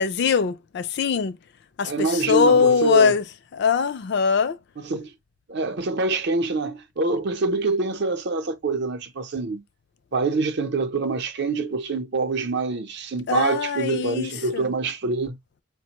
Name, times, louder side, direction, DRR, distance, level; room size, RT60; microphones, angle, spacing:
voice 1, 0.0-1.4 1.8-3.2 3.5-4.6 13.3-14.7, left 6 dB, 55° left, 0.4 m, -21 dB
voice 2, 1.8-3.2 4.8-5.1 5.5-9.6 10.1-15.4, right 3 dB, 55° right, 0.6 m, -25 dB
5.0 x 2.2 x 2.9 m
head